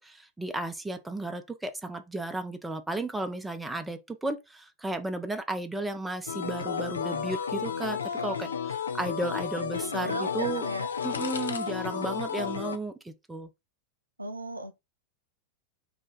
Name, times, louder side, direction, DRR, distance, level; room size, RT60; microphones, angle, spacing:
voice 1, 0.0-10.7 11.0-13.5, right 2 dB, 5° right, 0.4 m, -34 dB
sound 1, 6.3-12.8, left 7 dB, 70° left, 0.4 m, -32 dB
voice 2, 9.9-10.9 14.2-14.8, right 1 dB, 85° right, 0.4 m, -36 dB
2.4 x 2.4 x 3.9 m
figure-of-eight pair, 90°, 0 cm